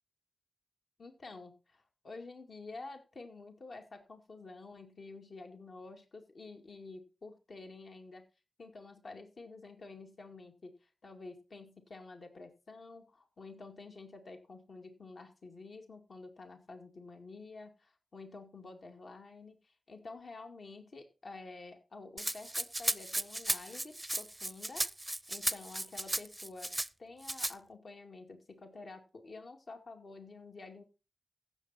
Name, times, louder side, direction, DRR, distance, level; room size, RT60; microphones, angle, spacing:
voice 1, 1.0-8.2 8.6-24.8 25.3-26.7 27.0-30.8, left 3 dB, 65° left, 4 dB, 2.2 m, -50 dB
Rattle (instrument), 22.2-26.9 27.2-27.5, right 1 dB, 10° right, 0.5 m, -35 dB
15.5 x 7.2 x 4.2 m, 0.30 s
wide cardioid pair, 80°, 0 cm